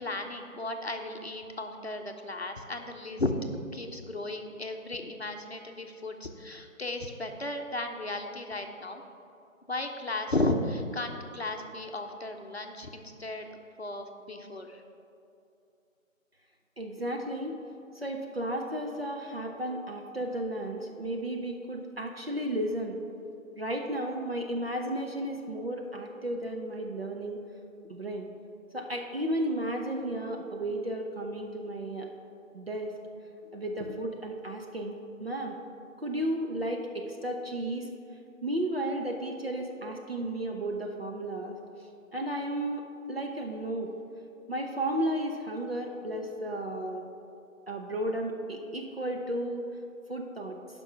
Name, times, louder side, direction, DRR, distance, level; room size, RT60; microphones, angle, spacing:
voice 1, 0.0-3.3 3.7-9.0 9.7-13.5 13.8-14.8, left 2 dB, 50° left, 4 dB, 0.7 m, -34 dB
voice 2, 16.8-17.6 17.9-23.0 23.6-27.4 27.9-28.3 28.7-32.1 32.5-33.0 33.5-35.6 36.0-37.9 38.4-41.5 42.1-43.9 44.5-47.0 47.7-49.6 50.1-50.6, right 1 dB, 45° right, 2 dB, 0.8 m, -33 dB
10.5 x 5.4 x 5.6 m, 2.7 s
figure-of-eight pair, 170°, 40 cm